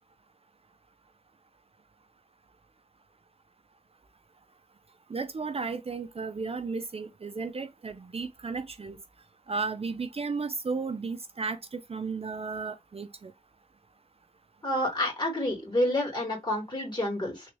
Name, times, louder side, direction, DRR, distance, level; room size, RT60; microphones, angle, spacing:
voice 1, 5.1-9.0 9.5-13.3 16.8-16.9, right 4 dB, 45° right, 0.4 m, -34 dB
voice 2, 14.6-17.5, left 1 dB, 35° left, 2.3 m, -29 dB
3.5 x 2.6 x 3.1 m
wide cardioid pair, 60°, 13 cm